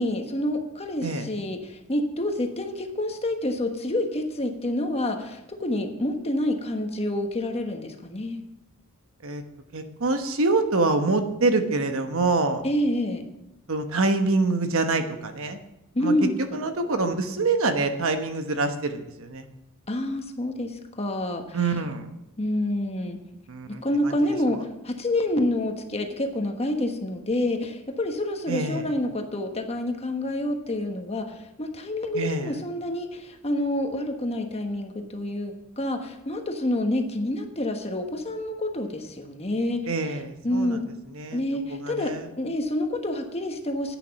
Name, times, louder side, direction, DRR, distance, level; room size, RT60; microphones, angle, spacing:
voice 1, 0.0-8.4 12.6-13.2 15.9-16.6 19.9-21.6 22.4-23.2 23.7-24.6 24.8-39.9 40.4-40.8 41.3-44.0, left 1 dB, 25° left, 4 dB, 1.3 m, -28 dB
voice 2, 9.7-12.6 13.7-15.6 16.0-19.4 21.5-22.1 23.5-24.3 28.5-28.8 32.1-32.5 39.9-40.8 41.1-41.4 41.7-42.3, right 3 dB, 65° right, 7 dB, 1.1 m, -26 dB
10.5 x 9.3 x 5.8 m, 0.91 s
head